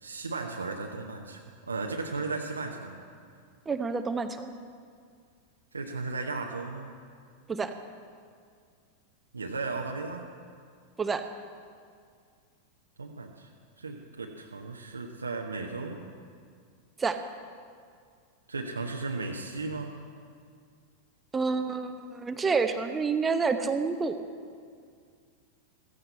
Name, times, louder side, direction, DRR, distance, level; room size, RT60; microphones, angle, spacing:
voice 1, 0.0-1.4 1.7-3.0 5.7-6.9 9.3-10.3 13.0-13.5 13.8-16.0 18.5-20.0, right 3 dB, 75° right, 1 dB, 0.9 m, -35 dB
voice 2, 3.7-4.5 7.5-7.7 11.0-11.2 17.0-17.2 21.3-24.2, right 4 dB, 15° right, 8 dB, 0.9 m, -28 dB
15.0 x 15.0 x 4.3 m, 2.1 s
figure-of-eight pair, 90°, 0 cm